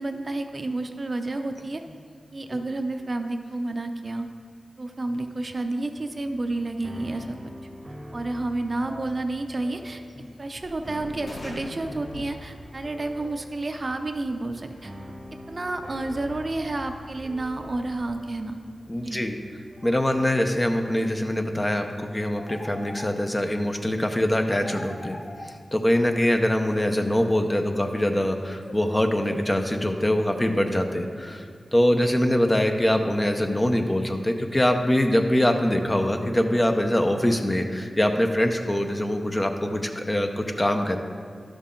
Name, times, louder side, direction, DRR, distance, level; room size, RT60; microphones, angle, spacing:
voice 1, 0.0-1.8 2.3-4.3 4.8-7.4 8.1-10.0 10.4-14.9 15.5-18.6 19.0-19.2, right 2 dB, 45° right, 6 dB, 0.6 m, -30 dB
sound 1, 6.0-22.2, equal, 20° right, 1.0 m, -44 dB
sound 2, 10.5-18.1, left 1 dB, 80° left, 2.2 m, -46 dB
voice 2, 18.9-19.4 19.8-25.2 25.7-31.4 31.7-41.0, left 1 dB, 25° left, 5 dB, 0.8 m, -23 dB
sound 3, 22.3-23.6 24.5-26.0 26.7-27.9 28.6-29.8, left 1 dB, 60° left, 0.9 m, -43 dB
11.5 x 6.3 x 3.8 m, 2.1 s
cardioid pair, 55°, 0 cm